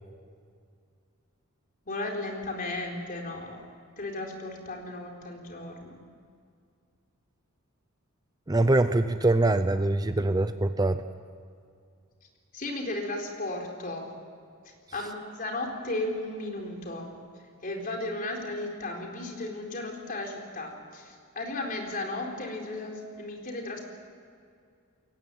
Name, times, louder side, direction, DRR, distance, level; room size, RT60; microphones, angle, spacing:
voice 1, 1.9-3.6 4.0-6.0 12.5-14.1 14.6-17.1 17.6-23.8, left 2 dB, 40° left, 1 dB, 4.1 m, -35 dB
voice 2, 8.5-11.0, right 2 dB, 20° right, 10 dB, 0.6 m, -23 dB
22.0 x 18.5 x 9.1 m, 2.3 s
head